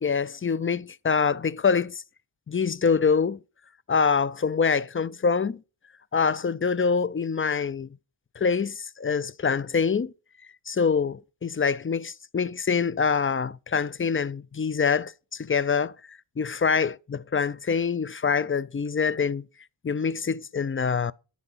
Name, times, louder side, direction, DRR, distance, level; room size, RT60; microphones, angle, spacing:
voice 1, 0.0-2.0 2.5-3.4 3.9-5.6 6.1-7.9 8.4-10.1 10.7-19.5 19.8-21.1, left 5 dB, 30° left, 0.4 m, -25 dB
10.5 x 4.8 x 5.5 m
wide cardioid pair, 50°, 48 cm